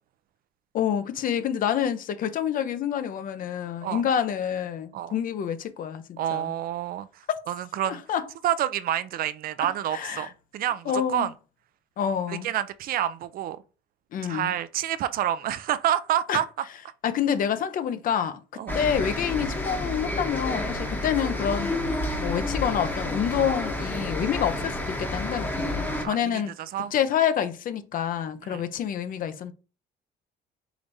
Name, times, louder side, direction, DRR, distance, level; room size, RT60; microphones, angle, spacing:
voice 1, 0.7-6.5 7.8-8.3 9.9-10.3 10.9-11.3 12.0-12.5 14.1-14.5 16.3-16.4 17.0-18.4 18.7-21.8 22.2-26.5 26.9-29.5, left 8 dB, 55° left, 0.6 m, -27 dB
voice 2, 6.2-7.1 7.5-8.0 8.4-10.3 10.5-11.3 12.3-13.6 14.3-16.5 18.5-18.8 26.0-26.9 28.4-28.7, right 11 dB, 60° right, 0.4 m, -28 dB
sound 1, 18.7-26.1, left 1 dB, 10° left, 0.9 m, -30 dB
4.9 x 3.3 x 2.7 m
cardioid pair, 110°, 17 cm